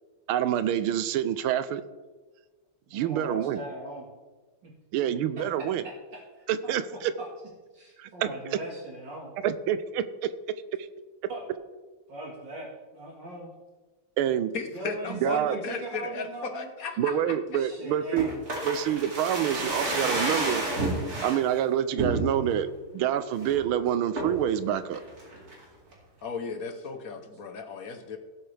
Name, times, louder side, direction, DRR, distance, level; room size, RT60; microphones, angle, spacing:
voice 1, 0.3-1.8 2.9-3.6 4.9-5.8 6.5-7.1 8.0-8.3 9.4-10.3 10.8-10.9 14.2-14.5 15.2-15.6 17.0-18.3 18.6-20.6 21.2-22.7 22.9-25.0, right 10 dB, 90° right, 13 dB, 1.5 m, -27 dB
voice 2, 2.9-4.1 5.6-5.7 6.1-7.3 7.7-9.4 11.3-11.4 12.1-13.5 14.7-16.7 17.6-18.3 19.5-20.3, right 2 dB, 60° right, -2 dB, 2.4 m, -40 dB
voice 3, 14.5-17.6 26.2-28.2, left 4 dB, 55° left, 7 dB, 1.2 m, -35 dB
sound 1, 18.2-21.4 22.0-22.6 23.0-23.1 23.3-23.7 24.2-24.5 24.9-25.6 25.9-26.0, right 2 dB, 45° right, 2.8 m, -30 dB
17.5 x 7.8 x 3.3 m, 1.3 s
omnidirectional pair, 2.2 m